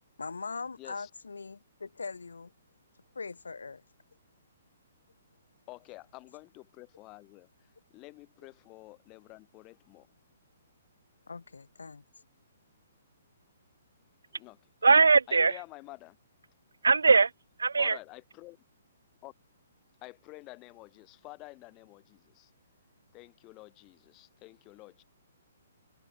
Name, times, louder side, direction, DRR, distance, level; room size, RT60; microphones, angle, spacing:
voice 1, 0.2-2.5 3.1-3.8 11.3-12.0, left 4 dB, 85° left, 1.4 m, -41 dB
voice 2, 0.8-1.1 5.7-10.1 14.3-14.6 15.3-16.2 17.8-18.6 19.2-19.3 20.0-22.5 23.1-25.0, left 22 dB, 30° left, 4.1 m, -49 dB
voice 3, 14.8-15.6 16.8-17.3 17.6-18.0, right 4 dB, 85° right, 0.5 m, -21 dB
hypercardioid pair, 135°, 0 cm